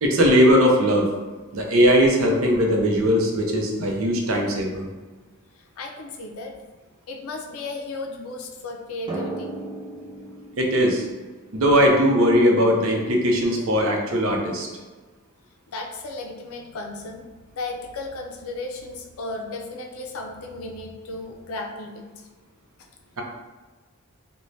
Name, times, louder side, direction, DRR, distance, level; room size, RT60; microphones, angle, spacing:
voice 1, 0.0-1.1 1.5-4.8 10.6-11.0 11.5-14.7, equal, 75° right, 0 dB, 0.5 m, -19 dB
voice 2, 5.6-6.5 7.1-9.5 15.7-22.3, left 2 dB, 85° left, 2 dB, 0.4 m, -35 dB
Drum, 9.1-12.4, right 2 dB, 20° right, 0.4 m, -36 dB
3.1 x 2.1 x 2.6 m, 1.3 s
head